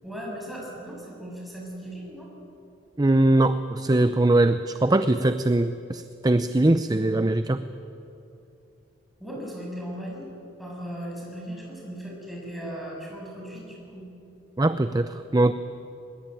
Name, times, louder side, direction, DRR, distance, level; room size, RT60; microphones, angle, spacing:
voice 1, 0.0-2.3 9.2-10.3 10.6-14.1, equal, ahead, -3 dB, 7.0 m, -37 dB
voice 2, 3.0-7.6 14.6-15.5, right 2 dB, 20° right, 11 dB, 0.5 m, -21 dB
22.0 x 21.5 x 9.1 m, 2.8 s
head